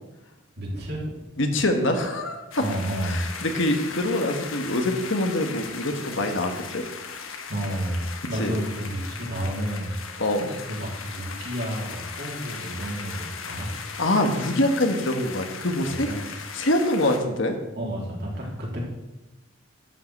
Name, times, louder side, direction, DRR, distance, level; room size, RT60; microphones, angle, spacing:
voice 1, 0.6-1.1 2.6-3.2 7.5-9.9 10.6-13.7 15.8-16.2 17.8-18.9, right 1 dB, 55° right, -3 dB, 3.6 m, -31 dB
voice 2, 1.4-2.4 3.0-6.9 8.4-8.6 10.2-10.6 14.0-16.1 16.5-17.6, left 1 dB, 65° left, 5 dB, 1.5 m, -24 dB
sound 1, 2.5-17.2, left 5 dB, 85° left, 1.4 m, -38 dB
11.5 x 5.7 x 8.0 m, 1.0 s
head